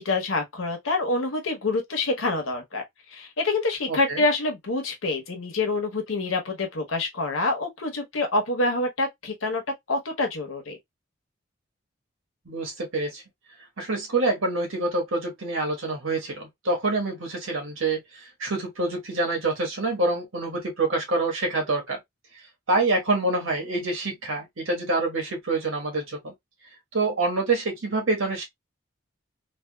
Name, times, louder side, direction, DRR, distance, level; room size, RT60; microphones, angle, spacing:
voice 1, 0.0-2.8 3.1-9.6 9.9-10.8, left 2 dB, 85° left, 1.0 m, -26 dB
voice 2, 3.9-4.2 12.4-13.2 13.8-18.0 18.4-22.0 22.7-26.3 26.9-28.4, right 2 dB, 85° right, 1.3 m, -26 dB
3.5 x 2.4 x 2.2 m
head